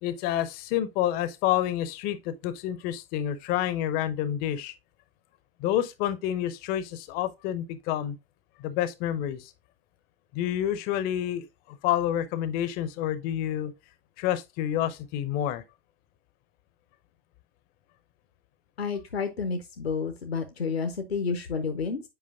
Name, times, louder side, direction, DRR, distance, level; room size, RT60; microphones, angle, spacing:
voice 1, 0.0-4.7 5.6-8.2 8.6-9.5 10.3-13.7 14.2-15.6, left 11 dB, 30° left, 0.6 m, -28 dB
voice 2, 18.8-22.0, left 5 dB, 75° left, 0.8 m, -30 dB
7.8 x 5.0 x 2.4 m
figure-of-eight pair, 95°, 31 cm